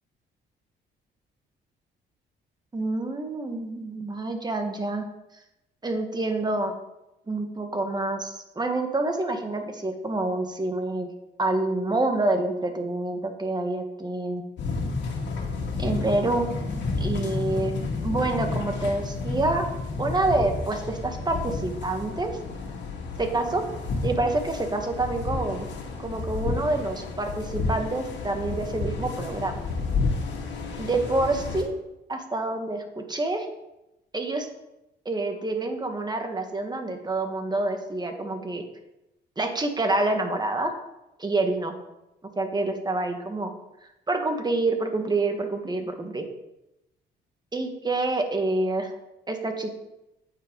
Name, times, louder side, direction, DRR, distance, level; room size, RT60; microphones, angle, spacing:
voice 1, 2.7-5.0 5.8-6.7 7.3-11.1 11.4-14.4 15.8-16.5 17.0-17.7 18.0-19.7 20.0-22.3 23.2-23.7 24.0-25.7 26.0-29.5 30.8-31.8 32.1-33.5 34.1-34.5 35.1-38.6 39.4-40.7 41.2-41.7 42.2-43.5 44.1-46.3 47.5-48.9 49.3-49.7, right 2 dB, 20° right, 5 dB, 1.7 m, -27 dB
sound 1, 14.6-31.6, left 3 dB, 65° left, 2.2 m, -31 dB
9.0 x 8.8 x 4.0 m, 0.92 s
cardioid pair, 90°, 20 cm